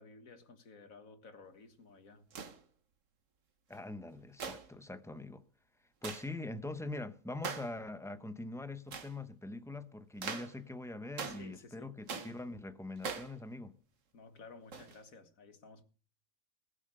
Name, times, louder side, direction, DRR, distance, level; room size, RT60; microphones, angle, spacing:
voice 1, 0.0-2.3 11.3-12.0 14.1-15.8, left 4 dB, 75° left, 2.1 m, -54 dB
sound 1, 2.3-2.6 4.4-4.7 6.0-6.3 7.4-7.8 8.9-9.1 10.2-10.6 11.2-11.5 12.1-12.4 13.0-13.4 14.7-15.0, right 5 dB, 65° right, 1.7 m, -41 dB
voice 2, 3.7-5.4 6.0-13.7, left 2 dB, 5° left, 0.7 m, -43 dB
20.0 x 7.9 x 6.6 m
omnidirectional pair, 1.4 m